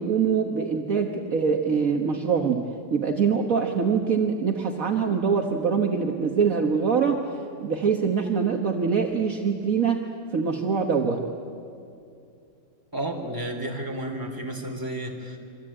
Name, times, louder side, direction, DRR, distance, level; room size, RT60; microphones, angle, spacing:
voice 1, 0.0-2.6 2.9-7.2 7.6-10.0 10.3-11.2, right 6 dB, 55° right, 2 dB, 1.7 m, -24 dB
voice 2, 12.9-15.4, right 1 dB, 10° right, 2 dB, 3.6 m, -32 dB
26.0 x 25.5 x 8.9 m, 2.5 s
omnidirectional pair, 1.9 m